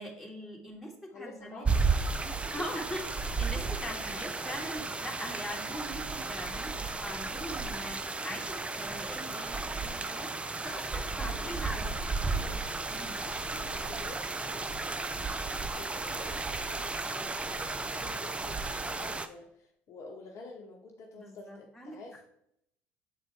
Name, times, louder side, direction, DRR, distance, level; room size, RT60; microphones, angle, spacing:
voice 1, 0.0-1.7 2.5-9.6 9.8-10.3 10.6-12.1 12.4-12.5 12.9-13.1 21.1-22.0, equal, ahead, -3 dB, 2.1 m, -42 dB
voice 2, 1.1-2.5 8.8-10.1 11.2-12.6 13.2-22.2, left 3 dB, 50° left, 1 dB, 0.9 m, -50 dB
sound 1, 1.6-19.3, right 3 dB, 20° right, 0.5 m, -34 dB
7.5 x 3.9 x 3.6 m, 0.73 s
hypercardioid pair, 70°, 6 cm